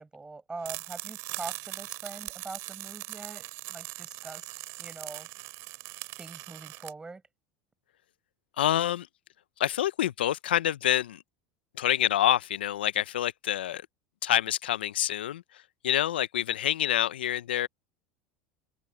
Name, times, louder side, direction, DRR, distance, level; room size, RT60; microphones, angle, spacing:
voice 1, 0.0-4.5 4.8-5.3 6.2-7.2, right 3 dB, 15° right, 6.7 m, -43 dB
sound 1, 0.6-6.9, right 23 dB, 60° right, 6.6 m, -40 dB
voice 2, 8.6-9.1 9.6-11.2 11.8-13.8 14.2-15.4 15.8-17.7, left 12 dB, 85° left, 0.9 m, -27 dB
open air
hypercardioid pair, 90°, 5 cm